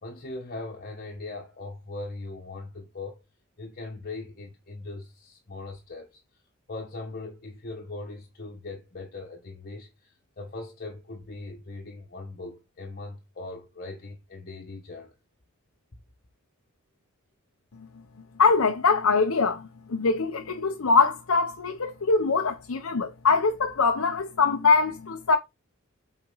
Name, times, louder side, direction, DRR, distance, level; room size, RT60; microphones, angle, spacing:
voice 1, 0.0-3.2 3.6-6.1 6.7-15.1, left 2 dB, 45° left, 1.3 m, -40 dB
voice 2, 18.4-19.6 19.9-25.4, left 4 dB, 75° left, 0.8 m, -23 dB
7.8 x 4.4 x 4.0 m
head